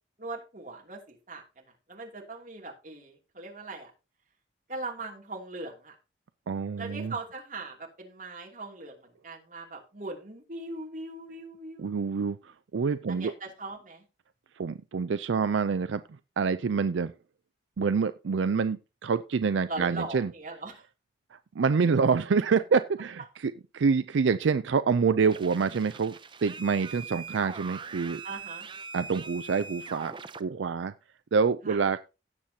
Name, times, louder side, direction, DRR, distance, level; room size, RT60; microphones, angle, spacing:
voice 1, 0.2-1.4 1.9-3.9 4.7-5.9 6.8-12.1 13.1-14.0 19.7-20.8 28.2-28.7 31.6-31.8, right 2 dB, 40° right, 0 dB, 2.8 m, -40 dB
voice 2, 6.5-7.1 11.8-12.4 12.7-13.3 14.6-16.0 16.4-17.1 17.8-20.3 21.6-26.1 26.4-28.2 28.9-30.1 30.4-30.9 31.3-32.0, right 5 dB, 75° right, 12 dB, 0.4 m, -26 dB
sound 1, 25.3-30.4, right 5 dB, 25° right, 0.6 m, -42 dB
17.0 x 7.3 x 2.8 m, 0.30 s
head